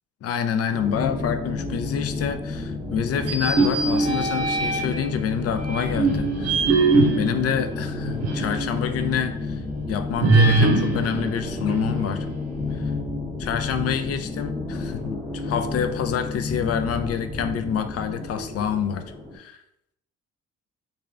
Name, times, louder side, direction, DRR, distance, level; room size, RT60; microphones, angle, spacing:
voice 1, 0.2-6.5 7.1-9.6 9.9-12.3 12.7-12.9 13.4-19.1 19.3-19.6, left 8 dB, 55° left, 9 dB, 0.4 m, -27 dB
sound 1, 0.7-19.4, left 3 dB, 5° left, 0.7 m, -31 dB
sound 2, 3.2-5.1 5.6-8.6 9.0-9.1 10.2-12.3, right 3 dB, 55° right, 0.7 m, -22 dB
3.4 x 2.4 x 3.3 m, 0.77 s
cardioid pair, 90°, 30 cm